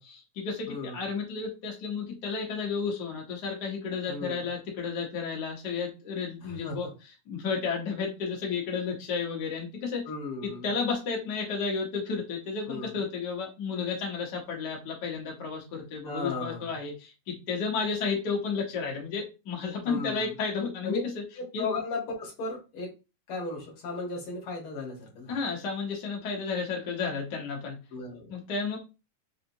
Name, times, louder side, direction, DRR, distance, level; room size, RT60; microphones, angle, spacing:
voice 1, 0.0-10.0 10.6-21.2 21.5-21.7 25.3-27.7 28.3-28.8, left 5 dB, 85° left, -1 dB, 0.9 m, -32 dB
voice 2, 0.7-1.0 4.1-4.4 6.4-6.8 10.1-10.7 12.7-13.0 16.1-16.7 19.9-20.3 20.8-21.0 21.4-22.9 23.3-25.4 27.9-28.3, left 3 dB, 55° left, -1 dB, 1.7 m, -35 dB
4.9 x 2.8 x 2.6 m, 0.29 s
omnidirectional pair, 3.6 m